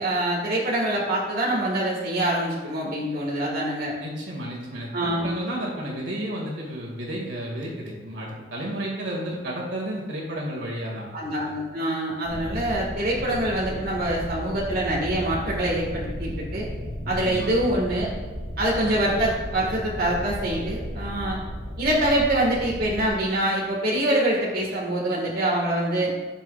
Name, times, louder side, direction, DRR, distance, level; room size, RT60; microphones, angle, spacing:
voice 1, 0.0-3.9 4.9-5.3 11.1-16.7 17.1-18.1 18.6-21.4 21.8-26.1, right 1 dB, 55° right, -4 dB, 1.8 m, -25 dB
voice 2, 4.0-11.1 17.2-17.5, right 1 dB, 80° right, -2 dB, 2.1 m, -32 dB
sound 1, 12.2-23.1, equal, 30° left, 2.7 m, -34 dB
15.0 x 6.0 x 2.4 m, 1.4 s
head